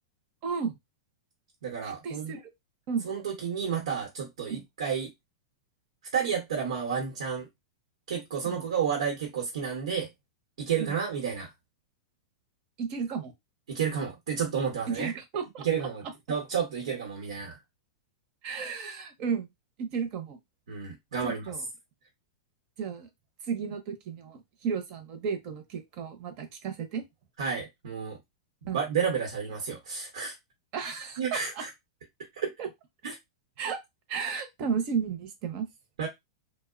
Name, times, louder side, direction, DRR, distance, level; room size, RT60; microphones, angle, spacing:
voice 1, 0.4-0.8 1.8-2.5 2.9-3.1 4.5-4.6 8.4-8.6 10.8-11.0 12.8-13.3 14.9-15.7 18.4-19.5 19.8-20.4 21.2-21.7 22.8-23.1 23.4-27.1 28.7-28.8 30.7-31.6 32.6-32.7 33.6-33.8 34.1-35.7, right 6 dB, 35° right, 0.6 m, -33 dB
voice 2, 1.6-2.3 3.0-5.1 6.1-7.5 8.1-10.1 10.6-11.5 13.7-15.1 15.6-17.6 20.7-21.4 27.4-28.2 28.7-30.4 31.2-31.7 32.4-32.5 33.0-33.1 36.0-36.1, right 7 dB, 85° right, 0.8 m, -31 dB
2.8 x 2.0 x 2.4 m
supercardioid pair, 165°, 3 cm